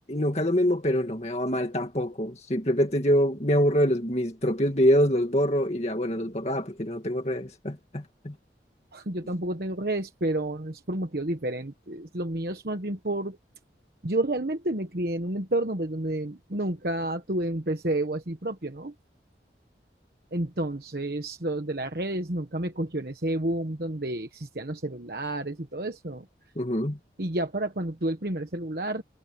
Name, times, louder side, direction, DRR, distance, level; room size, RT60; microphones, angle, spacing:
voice 1, 0.1-8.3 26.6-27.0, equal, 40° left, 2.2 m, -25 dB
voice 2, 8.9-13.4 14.0-18.9 20.3-26.3 27.2-29.0, right 1 dB, 60° right, 1.3 m, -30 dB
head